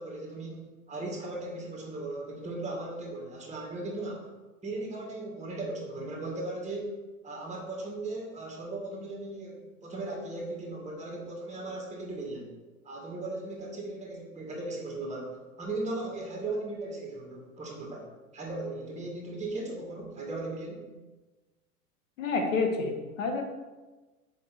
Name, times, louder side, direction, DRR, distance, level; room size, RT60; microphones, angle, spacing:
voice 1, 0.0-4.2 4.6-7.0 7.2-12.6 12.8-18.1 18.3-20.9, right 2 dB, 15° right, -1 dB, 2.2 m, -37 dB
voice 2, 22.2-23.4, left 4 dB, 60° left, 3 dB, 1.5 m, -29 dB
7.4 x 5.8 x 4.5 m, 1.2 s
figure-of-eight pair, 95°, 44 cm